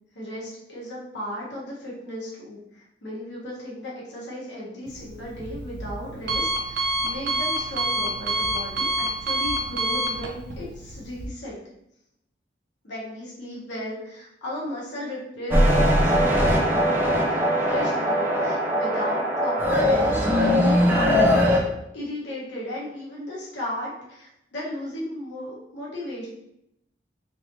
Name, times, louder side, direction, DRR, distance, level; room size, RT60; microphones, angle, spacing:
voice 1, 0.1-11.6 12.8-26.3, left 1 dB, 75° left, -6 dB, 1.2 m, -35 dB
Alarm, 4.9-11.3, right 1 dB, 65° right, 0.5 m, -28 dB
sound 1, 15.5-21.6, equal, 10° right, 0.4 m, -20 dB
3.2 x 2.7 x 2.7 m, 0.80 s
head